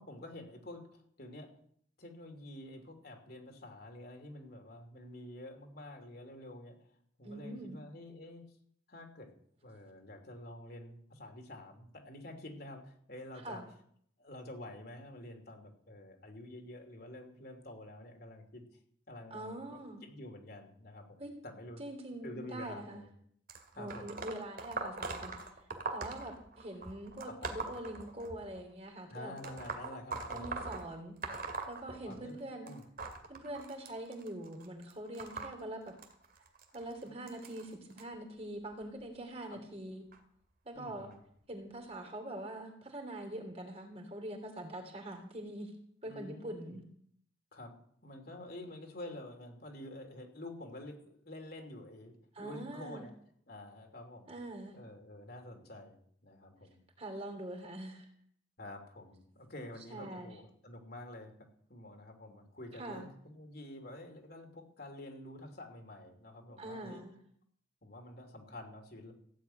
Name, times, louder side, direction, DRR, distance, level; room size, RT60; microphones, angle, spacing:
voice 1, 0.0-1.5 2.0-6.8 7.2-8.6 8.9-9.3 9.6-13.6 14.2-18.6 19.1-21.8 22.2-23.1 23.7-24.2 27.3-27.6 29.1-30.6 32.0-32.4 32.6-32.9 39.5-39.6 40.7-41.2 46.0-46.8 47.5-47.7 48.0-53.1 53.5-54.3 54.7-56.8 58.6-67.0 67.8-69.1, left 1 dB, 50° left, 3 dB, 2.8 m, -48 dB
voice 2, 7.2-7.8 13.4-13.7 19.3-20.0 21.2-21.3 21.8-23.0 23.7-25.3 25.9-29.3 30.3-31.2 31.7-32.7 33.3-36.0 36.7-40.0 40.6-41.1 41.5-45.7 46.0-46.8 52.3-53.0 54.3-54.7 57.0-58.1 59.9-60.4 62.8-63.1 66.6-67.2, right 1 dB, 30° right, 3 dB, 2.9 m, -44 dB
sound 1, 23.5-28.6 29.4-32.4 32.7-38.0 38.8-39.1 40.1-40.2 41.1-41.2 41.9-42.0, right 3 dB, 45° right, 2.1 m, -42 dB
15.5 x 7.7 x 9.2 m, 0.65 s
head